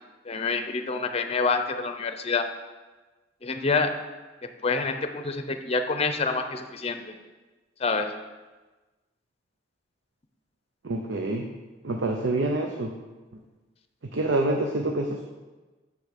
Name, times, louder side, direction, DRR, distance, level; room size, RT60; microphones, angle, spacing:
voice 1, 0.2-2.5 3.4-4.0 4.6-7.2 7.8-8.1, left 4 dB, 35° left, 8 dB, 0.6 m, -27 dB
voice 2, 10.8-11.5 11.8-12.9 14.0-15.2, right 2 dB, 75° right, 3 dB, 0.7 m, -27 dB
6.7 x 6.2 x 6.6 m, 1.2 s
head